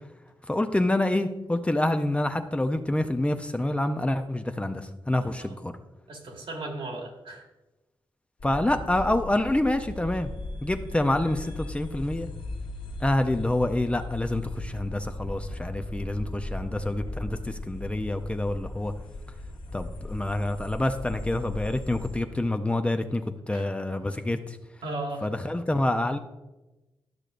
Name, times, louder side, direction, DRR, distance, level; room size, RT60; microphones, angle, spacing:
voice 1, 0.5-5.7 8.4-10.3 10.6-12.3 13.0-18.9 19.7-24.6 25.2-26.2, left 1 dB, 15° left, 7 dB, 0.5 m, -27 dB
voice 2, 5.2-5.5 6.1-7.4 23.5-23.7 24.8-25.3, right 2 dB, 80° right, 0 dB, 1.9 m, -36 dB
sound 1, 8.4-22.2, left 1 dB, 65° left, 1.3 m, -38 dB
12.0 x 6.5 x 2.5 m, 1.0 s
wide cardioid pair, 100°, 9 cm